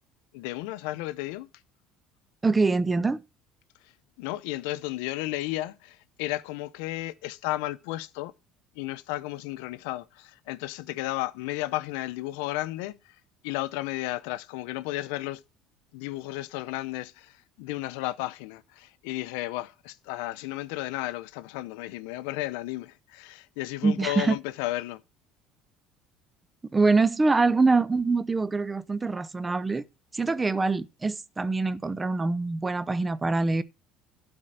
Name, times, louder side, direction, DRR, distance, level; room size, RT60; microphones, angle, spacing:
voice 1, 0.3-1.5 3.8-8.3 8.7-15.4 15.9-25.0, left 17 dB, 85° left, 0.6 m, -33 dB
voice 2, 2.4-3.2 23.8-24.4 26.7-29.8 30.1-33.6, right 3 dB, 15° right, 0.7 m, -24 dB
12.0 x 4.4 x 7.5 m
cardioid pair, 115°, 0 cm